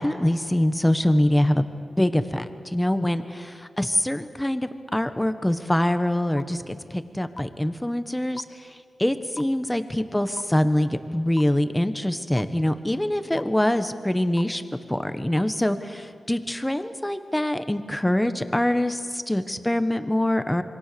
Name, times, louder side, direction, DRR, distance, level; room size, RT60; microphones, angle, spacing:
voice 1, 0.0-1.7 2.0-2.4 2.7-8.4 9.0-14.6 14.9-20.6, left 1 dB, 10° left, 10 dB, 1.4 m, -24 dB
sound 1, 6.4-6.5 7.4-7.5 8.4-8.5 9.4-9.5 10.4-10.5 11.4-11.5 12.4-12.5 13.4-13.5 14.4-14.5 15.4-15.5, left 3 dB, 30° left, 0.6 m, -37 dB
27.0 x 23.5 x 7.0 m, 2.3 s
wide cardioid pair, 90°, 0 cm